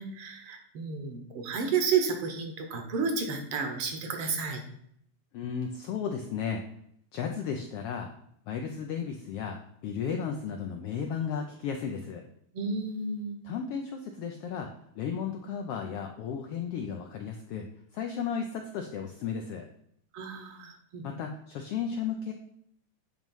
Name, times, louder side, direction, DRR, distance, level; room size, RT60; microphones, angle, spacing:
voice 1, 0.0-4.6 12.5-13.4 20.1-21.0, right 5 dB, 60° right, 4 dB, 1.6 m, -31 dB
voice 2, 5.3-6.6 7.1-8.1 8.5-12.2 13.4-14.7 15.0-17.7 17.9-19.7 21.0-22.3, left 7 dB, 85° left, 3 dB, 1.3 m, -34 dB
8.9 x 3.1 x 5.3 m, 0.69 s
omnidirectional pair, 3.3 m